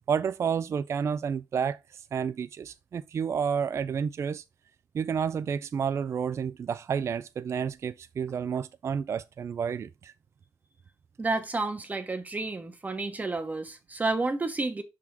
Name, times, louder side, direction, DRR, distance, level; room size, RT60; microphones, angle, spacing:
voice 1, 0.1-4.4 4.9-10.1, right 7 dB, 35° right, 0.3 m, -30 dB
voice 2, 11.2-14.8, right 3 dB, 20° right, 1.0 m, -30 dB
5.9 x 3.6 x 4.6 m
cardioid pair, 100°, 8 cm